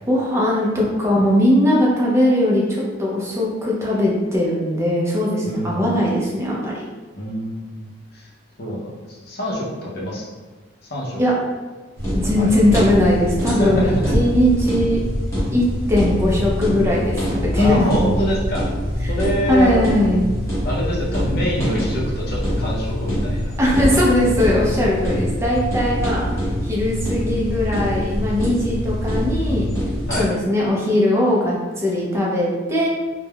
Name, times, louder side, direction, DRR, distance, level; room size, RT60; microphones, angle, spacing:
voice 1, 0.1-6.8 11.2-11.3 12.1-15.0 15.5-17.9 19.5-20.3 23.6-26.3 26.6-29.7 30.2-32.9, left 1 dB, 15° right, -4 dB, 0.4 m, -19 dB
voice 2, 5.4-6.1 7.1-7.9 8.1-8.3 8.6-10.2 10.9-11.2 12.4-12.5 13.6-14.1 17.5-18.7 19.1-19.8 20.6-23.6 23.9-24.1 24.8-24.9 30.1-30.3, equal, 50° left, -4 dB, 0.6 m, -25 dB
sound 1, 12.0-30.3, equal, 15° left, 0.8 m, -24 dB
3.3 x 2.1 x 2.2 m, 1.3 s
head